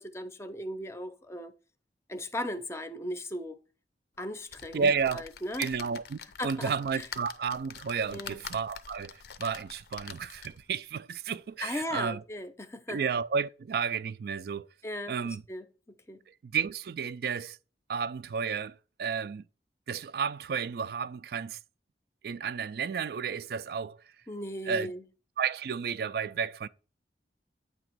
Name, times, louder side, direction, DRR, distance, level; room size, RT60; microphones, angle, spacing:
voice 1, 0.0-1.5 2.1-3.6 4.2-5.7 6.4-7.1 8.1-8.4 11.6-13.0 14.8-16.2 24.3-25.1, left 1 dB, 15° left, 0.6 m, -37 dB
sound 1, 4.5-10.7 11.3-11.4 11.6-11.7, left 7 dB, 60° left, 0.5 m, -45 dB
voice 2, 4.7-5.2 5.6-12.2 12.9-14.7 15.1-15.4 16.4-17.6 17.9-19.4 19.9-21.6 22.2-24.0 24.7-24.9 25.4-26.7, right 6 dB, 60° right, 0.3 m, -32 dB
8.7 x 2.9 x 5.9 m
head